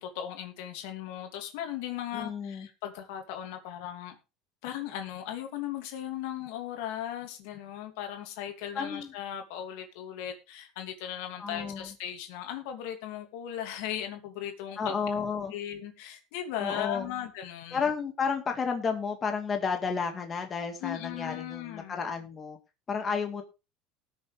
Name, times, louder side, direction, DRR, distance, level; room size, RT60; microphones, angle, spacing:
voice 1, 0.0-4.2 4.6-15.0 15.5-17.8 20.8-22.0, left 10 dB, 75° left, 2.8 m, -37 dB
voice 2, 2.1-2.7 8.7-9.1 11.4-11.9 14.8-15.5 16.6-17.1 17.7-22.6 22.9-23.4, left 5 dB, 25° left, 2.3 m, -32 dB
19.0 x 6.9 x 3.6 m
supercardioid pair, 130°, 0 cm